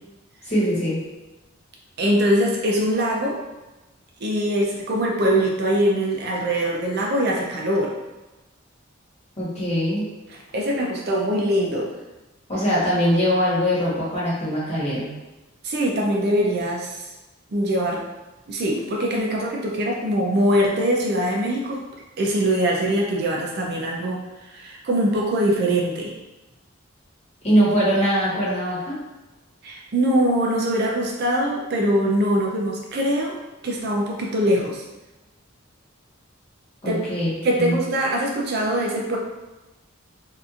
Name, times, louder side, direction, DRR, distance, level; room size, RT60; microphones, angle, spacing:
voice 1, 0.4-1.0 9.4-10.0 12.5-15.1 27.4-29.0 36.8-37.8, equal, 35° left, -9 dB, 1.2 m, -22 dB
voice 2, 2.0-3.4 4.2-7.9 10.3-11.9 15.6-17.0 17.5-18.0 18.5-21.8 22.2-26.2 29.6-33.4 33.6-34.8 36.9-37.0 37.4-39.2, equal, 55° right, -1 dB, 0.4 m, -22 dB
2.7 x 2.4 x 2.4 m, 1.1 s
head